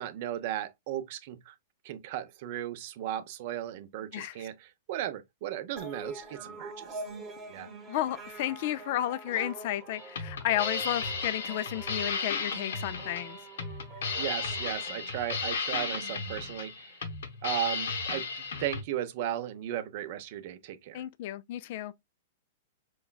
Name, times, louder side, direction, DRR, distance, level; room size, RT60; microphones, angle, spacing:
voice 1, 0.0-1.5 1.8-7.0 7.5-7.7 14.2-16.9 17.4-21.0, right 11 dB, 50° right, 0.6 m, -36 dB
sound 1, 5.8-15.6, right 3 dB, 15° right, 1.0 m, -45 dB
voice 2, 7.9-13.4 20.9-21.9, left 13 dB, 55° left, 0.3 m, -32 dB
sound 2, 9.9-18.8, left 4 dB, 80° left, 0.8 m, -34 dB
4.7 x 2.2 x 2.3 m
hypercardioid pair, 145°, 0 cm